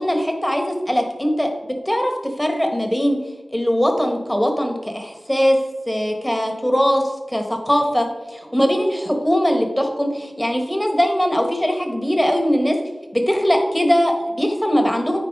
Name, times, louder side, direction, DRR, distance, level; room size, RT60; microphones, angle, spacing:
voice 1, 0.0-3.2 3.5-5.6 5.9-12.8 13.1-15.2, equal, 10° left, 4 dB, 1.2 m, -20 dB
9.3 x 4.3 x 3.6 m, 1.2 s
wide cardioid pair, 65°, 0 cm